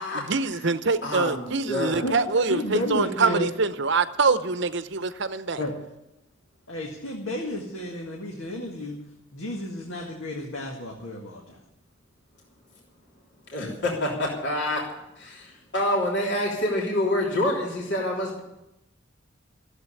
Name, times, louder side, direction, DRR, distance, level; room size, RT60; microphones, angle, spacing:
voice 1, 0.1-5.6, right 4 dB, 55° right, 13 dB, 0.8 m, -24 dB
voice 2, 1.0-2.1 13.5-14.8 15.2-18.4, left 1 dB, 55° left, -2 dB, 3.2 m, -27 dB
voice 3, 2.5-3.5 5.6-5.7 6.7-9.0 9.3-11.6, left 1 dB, 75° left, 0 dB, 2.0 m, -32 dB
14.5 x 8.0 x 9.8 m, 0.89 s
head